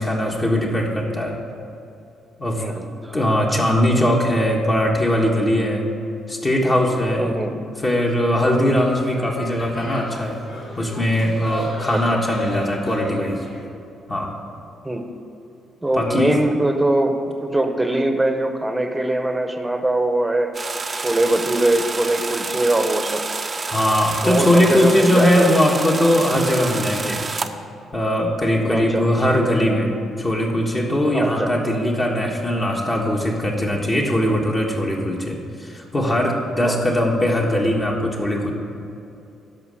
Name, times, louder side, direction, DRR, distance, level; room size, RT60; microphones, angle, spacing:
voice 1, 0.0-1.4 2.4-2.7 3.1-5.8 6.3-7.3 7.8-10.4 10.8-13.4 14.1-14.3 15.9-16.4 23.7-27.2 27.9-29.9 30.2-38.5, left 1 dB, 30° left, -2 dB, 1.5 m, -20 dB
voice 2, 2.6-3.3 7.2-7.5 8.7-8.8 11.9-12.2 14.8-15.1 15.8-17.1 17.4-20.5 21.0-23.3 24.2-25.5 28.6-29.1 31.1-31.5 36.6-37.1, right 1 dB, 10° right, 7 dB, 0.9 m, -22 dB
sound 1, 8.5-13.6, equal, 55° left, 2.5 m, -36 dB
sound 2, 20.5-27.5, right 4 dB, 30° right, 0.6 m, -28 dB
12.5 x 5.2 x 6.4 m, 2.8 s
cardioid pair, 90°, 0 cm